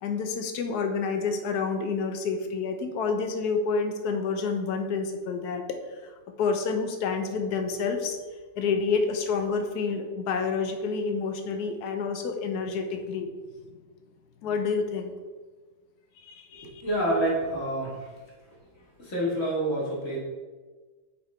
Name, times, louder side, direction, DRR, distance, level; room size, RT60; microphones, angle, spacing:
voice 1, 0.0-5.8 6.4-8.2 8.6-13.3 14.4-15.1 16.2-16.8, left 5 dB, 65° left, 6 dB, 1.2 m, -28 dB
voice 2, 16.6-18.2 19.0-20.2, right 1 dB, 45° left, -4 dB, 2.2 m, -28 dB
6.0 x 4.9 x 4.2 m, 1.4 s
omnidirectional pair, 2.0 m